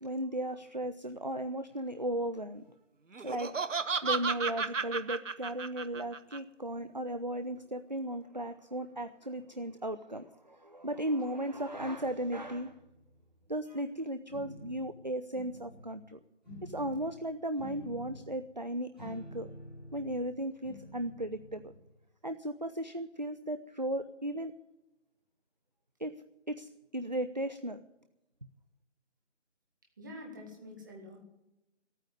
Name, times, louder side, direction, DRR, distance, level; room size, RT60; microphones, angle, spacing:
voice 1, 0.0-2.6 3.2-3.5 4.0-12.8 13.5-16.2 16.6-19.5 19.9-21.7 22.2-24.5 26.0-26.1 26.5-27.8, right 1 dB, 40° right, 10 dB, 0.4 m, -36 dB
Laughter, 3.1-6.4, right 5 dB, 90° right, 1.0 m, -33 dB
sound 1, 11.9-13.5 14.3-14.8 15.3-15.9 16.4-17.1 17.6-18.3 18.9-20.2 20.6-21.8, equal, ahead, 6.7 m, -49 dB
voice 2, 30.0-31.2, left 1 dB, 15° right, 0 dB, 1.8 m, -47 dB
13.5 x 9.1 x 9.6 m, 0.93 s
figure-of-eight pair, 170°, 36 cm